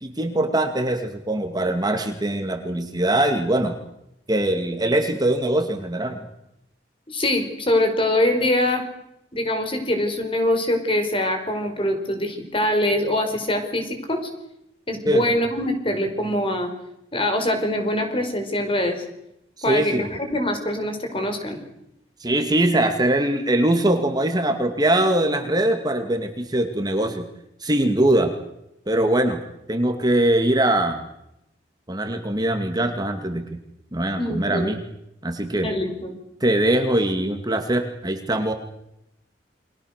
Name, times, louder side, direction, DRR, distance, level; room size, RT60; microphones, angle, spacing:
voice 1, 0.0-3.8 4.3-6.3 15.1-15.3 19.7-20.1 22.2-27.3 27.6-28.3 28.9-29.4 29.7-31.0 31.9-33.6 33.9-34.8 35.2-35.7 36.4-38.5, right 1 dB, 25° right, 6 dB, 2.3 m, -22 dB
voice 2, 7.1-8.8 9.3-14.2 14.9-16.7 17.1-19.0 19.6-21.6 34.2-34.7 35.6-36.1, left 1 dB, 30° left, 6 dB, 4.9 m, -23 dB
29.5 x 23.5 x 6.7 m, 0.84 s
head